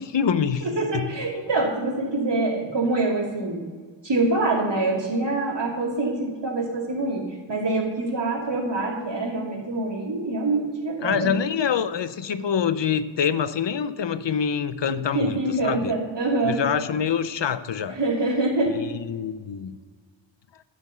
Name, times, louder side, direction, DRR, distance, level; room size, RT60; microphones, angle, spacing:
voice 1, 0.0-0.7 0.9-1.1 11.0-15.9 16.4-18.0 18.7-19.8, left 7 dB, 70° left, 13 dB, 0.6 m, -25 dB
voice 2, 0.6-3.6 4.0-7.2 7.5-11.3 15.1-16.6 17.9-18.7, right 2 dB, 65° right, -3 dB, 2.6 m, -25 dB
11.0 x 5.2 x 6.9 m, 1.5 s
wide cardioid pair, 70°, 45 cm